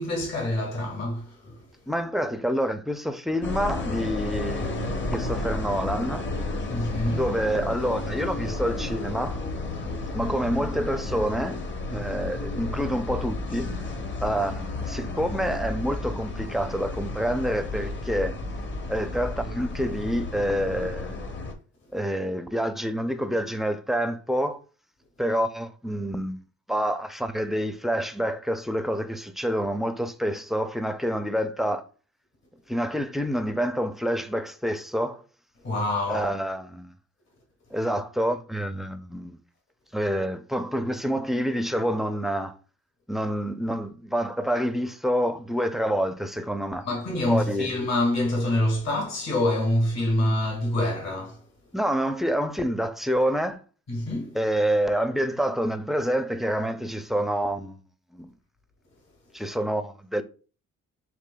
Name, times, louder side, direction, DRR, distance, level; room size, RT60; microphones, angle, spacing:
voice 1, 0.0-1.6 6.7-7.3 35.6-36.3 46.8-51.4 53.9-54.4, left 1 dB, 60° left, 1.7 m, -26 dB
voice 2, 1.9-6.3 7.1-9.4 10.1-13.7 14.2-18.4 18.9-21.2 21.9-24.6 25.2-26.4 26.7-31.8 32.7-35.2 36.1-36.9 37.7-39.4 39.9-42.6 43.1-46.9 47.3-47.7 51.7-53.6 54.3-57.8 58.1-58.3 59.3-60.2, equal, ahead, 0.4 m, -27 dB
sound 1, 3.4-21.5, left 2 dB, 40° left, 0.9 m, -32 dB
6.7 x 3.0 x 2.2 m
cardioid pair, 90°, 30 cm